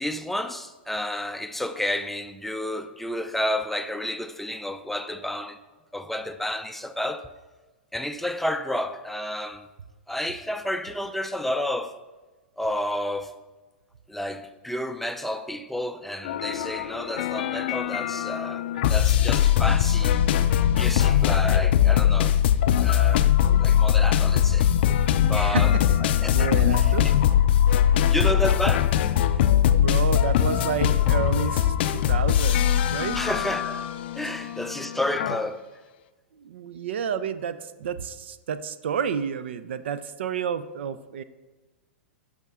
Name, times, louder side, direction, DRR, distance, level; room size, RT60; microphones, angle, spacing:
voice 1, 0.0-5.6 5.9-7.3 7.9-9.7 10.1-11.9 12.6-13.3 14.1-20.2 20.7-22.4 22.8-23.3 23.6-24.7 25.3-26.9 28.0-28.9 33.1-33.9 34.2-35.6, left 1 dB, 5° left, 0.4 m, -30 dB
sound 1, 16.2-35.4, left 10 dB, 60° left, 0.4 m, -21 dB
voice 2, 25.3-25.8 26.3-27.2 27.8-28.3 29.8-33.2 36.4-41.2, right 7 dB, 65° right, 0.5 m, -30 dB
10.5 x 6.3 x 3.6 m
hypercardioid pair, 105°, 7 cm